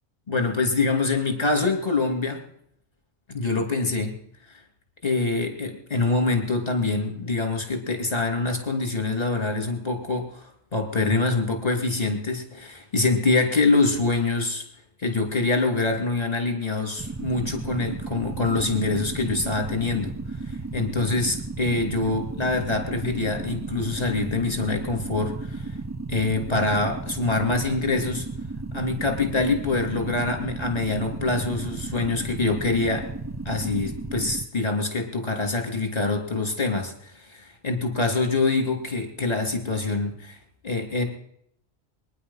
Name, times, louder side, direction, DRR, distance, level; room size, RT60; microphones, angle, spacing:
voice 1, 0.3-2.4 3.3-4.2 4.5-4.6 5.0-14.7 15.0-20.1 20.4-25.8 26.1-28.3 28.7-33.1 33.4-40.4 40.6-41.0, left 3 dB, 35° left, 3 dB, 2.8 m, -25 dB
sound 1, 17.0-34.4, right 3 dB, 30° right, 0.3 m, -34 dB
23.0 x 10.0 x 5.6 m, 0.73 s
omnidirectional pair, 1.2 m